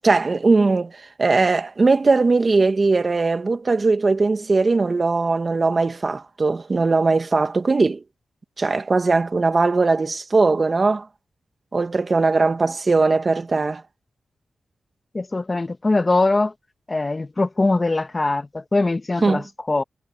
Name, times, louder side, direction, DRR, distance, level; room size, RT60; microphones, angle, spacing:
voice 1, 0.0-8.0 8.6-11.1 11.7-13.8 19.2-19.4, right 3 dB, 45° right, 1.9 m, -19 dB
voice 2, 15.1-16.5 16.9-19.8, left 2 dB, 35° left, 1.6 m, -22 dB
cardioid pair, 60°, 0 cm